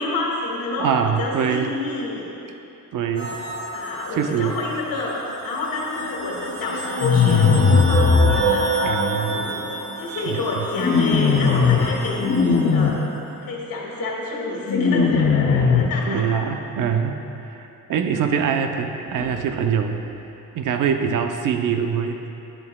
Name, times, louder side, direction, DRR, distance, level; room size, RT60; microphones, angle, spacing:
voice 1, 0.0-2.3 3.7-8.8 9.3-9.7 10.0-12.3 12.7-13.1 13.4-16.3 19.1-19.3, left 2 dB, 85° left, -3 dB, 1.9 m, -29 dB
voice 2, 0.8-1.7 2.9-3.4 4.2-4.6 8.7-9.5 10.2-10.6 15.7-17.2 17.9-20.0 20.5-22.2, right 7 dB, 65° right, 5 dB, 0.7 m, -23 dB
sound 1, 3.2-12.9, right 2 dB, 40° right, 2.1 m, -28 dB
sound 2, 7.0-8.4 10.8-11.9 12.2-12.9 14.7-15.9, left 5 dB, 40° left, 0.6 m, -17 dB
11.0 x 10.5 x 2.3 m, 2.9 s
wide cardioid pair, 160°, 34 cm